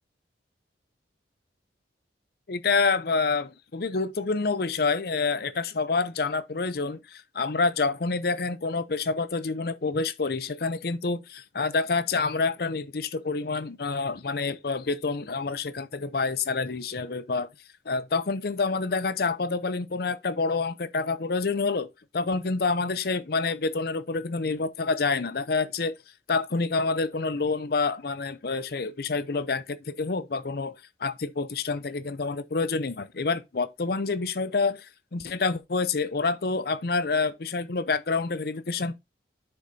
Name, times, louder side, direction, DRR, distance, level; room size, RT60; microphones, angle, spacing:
voice 1, 2.5-17.5 17.9-21.9 22.1-25.9 26.3-30.7 31.0-39.0, left 4 dB, 55° left, 0.6 m, -27 dB
8.1 x 6.6 x 2.7 m
head